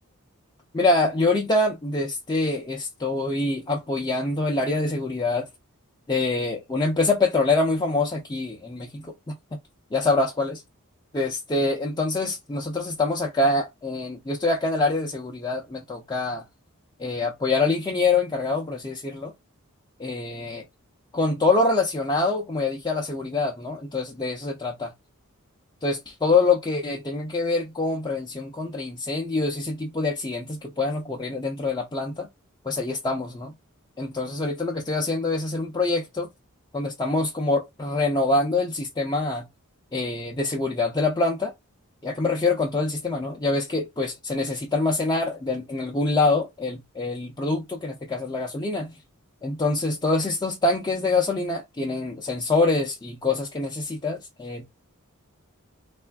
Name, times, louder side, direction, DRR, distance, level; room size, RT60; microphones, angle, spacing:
voice 1, 0.7-5.5 6.1-9.3 9.9-10.6 11.1-16.4 17.0-19.3 20.0-20.6 21.1-24.9 25.8-32.3 32.6-33.5 34.0-36.3 36.7-39.4 39.9-41.5 42.0-48.9 49.4-54.6, left 3 dB, 20° left, 0.5 m, -25 dB
3.2 x 2.4 x 2.2 m
head